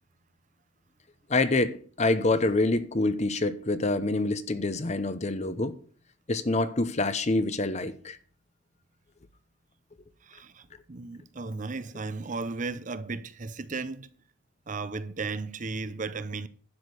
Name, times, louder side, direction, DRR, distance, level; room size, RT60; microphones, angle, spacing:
voice 1, 1.3-5.8 6.3-8.2, left 2 dB, 35° left, 0.8 m, -26 dB
voice 2, 10.3-14.1 14.7-16.5, right 3 dB, 40° right, 0.7 m, -35 dB
11.5 x 5.1 x 8.0 m
head